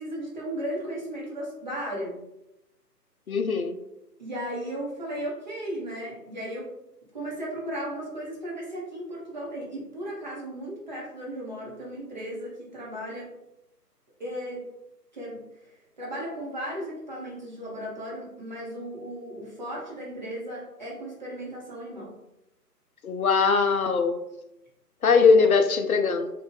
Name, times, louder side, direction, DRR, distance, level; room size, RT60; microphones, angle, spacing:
voice 1, 0.0-2.2 4.2-6.7 7.1-13.3 14.2-14.7 15.1-15.4 16.0-22.1, right 1 dB, 30° right, -5 dB, 0.9 m, -35 dB
voice 2, 3.3-3.8 23.0-24.2 25.0-26.3, left 5 dB, 60° left, 7 dB, 0.5 m, -21 dB
2.6 x 2.3 x 3.8 m, 0.87 s
figure-of-eight pair, 145°, 49 cm